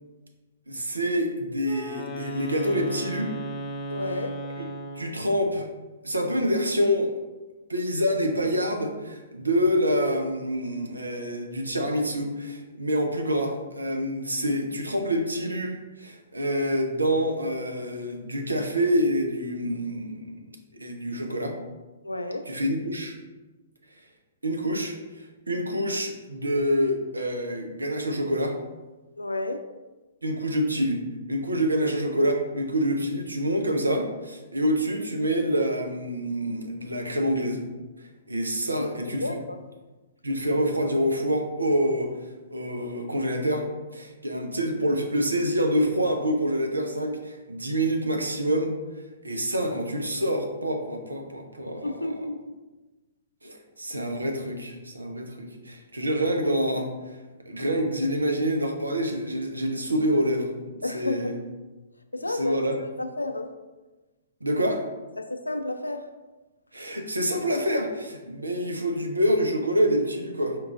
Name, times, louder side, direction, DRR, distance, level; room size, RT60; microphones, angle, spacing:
voice 1, 0.7-3.3 5.0-5.7 6.0-7.1 7.7-20.5 20.8-21.6 22.5-23.2 24.4-28.6 30.2-31.0 31.3-37.6 38.3-39.4 40.2-42.1 42.5-48.8 49.2-52.0 53.4-56.9 57.5-60.5 60.9-61.3 62.3-62.8 64.4-64.9 66.7-70.6, equal, 85° right, 3 dB, 0.6 m, -26 dB
Wind instrument woodwind instrument, 1.6-5.3, right 1 dB, 25° left, 0.5 m, -35 dB
voice 2, 3.9-4.4 22.0-22.5 29.2-29.7 38.7-39.6 51.6-52.6 60.8-61.5 62.1-63.5 65.2-66.1, left 2 dB, 90° left, 7 dB, 0.3 m, -32 dB
4.6 x 2.4 x 3.6 m, 1.2 s
figure-of-eight pair, 115°, 0 cm